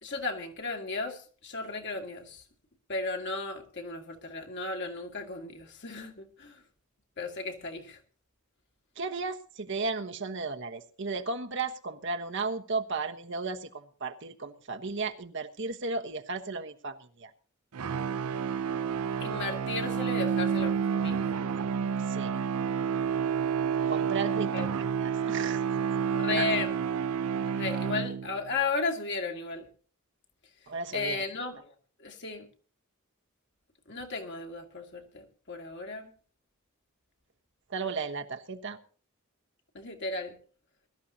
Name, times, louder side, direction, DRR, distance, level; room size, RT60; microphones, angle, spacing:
voice 1, 0.0-2.4 2.9-6.6 7.2-8.0 19.2-21.3 24.5-24.7 26.1-26.7 27.5-29.7 30.9-31.7 32.0-32.5 33.9-36.1 39.7-40.3, left 3 dB, 55° left, 2.5 m, -34 dB
voice 2, 9.0-17.3 22.1-22.4 23.9-25.6 26.4-26.5 30.7-31.2 37.7-38.8, right 4 dB, 55° right, 1.2 m, -35 dB
sound 1, 17.7-28.5, right 7 dB, 90° right, 0.6 m, -29 dB
22.0 x 13.0 x 2.8 m
head